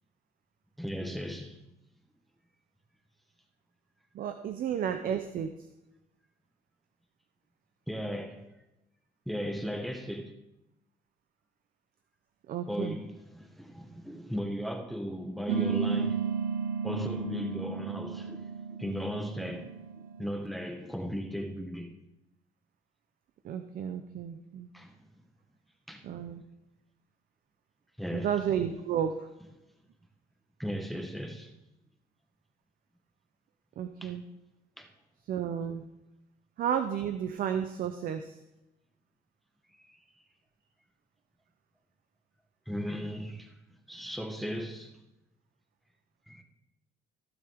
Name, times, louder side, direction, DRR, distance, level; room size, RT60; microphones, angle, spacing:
voice 1, 0.8-1.6 7.9-8.5 9.3-10.3 12.7-16.2 16.8-18.5 18.8-19.7 20.2-21.9 24.7-24.9 25.9-26.0 28.0-28.3 30.6-31.5 34.0-34.2 34.8-34.9 39.9-40.0 42.7-43.5 43.9-44.9 46.3-46.4, equal, ahead, 1.1 m, -36 dB
voice 2, 4.1-5.5 12.5-13.0 23.4-24.7 26.0-26.4 28.1-29.3 33.8-34.2 35.3-35.9 36.6-38.4, right 8 dB, 60° right, 0.7 m, -32 dB
sound 1, 15.5-20.4, right 7 dB, 75° right, 1.1 m, -33 dB
15.5 x 6.7 x 3.7 m
cardioid pair, 110°, 17 cm